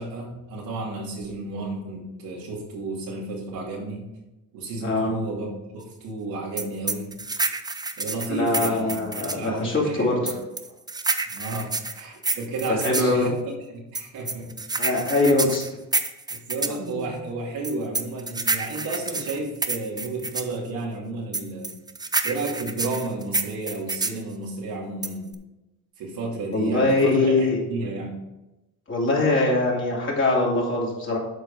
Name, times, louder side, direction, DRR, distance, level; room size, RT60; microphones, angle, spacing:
voice 1, 0.0-4.1 4.5-5.5 5.7-7.2 8.0-8.9 9.2-10.4 11.3-14.5 16.3-21.8 22.2-25.3 26.0-28.2, right 2 dB, 85° right, -3 dB, 2.7 m, -32 dB
sound 1, 6.6-9.5 10.3-13.1 13.9-16.8 17.6-20.5 21.3-24.2 25.0-25.3, right 3 dB, 10° right, 0.5 m, -28 dB
voice 2, 8.3-10.4 12.7-13.3 14.7-15.6 16.7-17.1 26.5-27.6 28.9-31.2, left 2 dB, 35° left, -4 dB, 3.0 m, -22 dB
8.0 x 5.1 x 4.8 m, 1.0 s
cardioid pair, 100°, 34 cm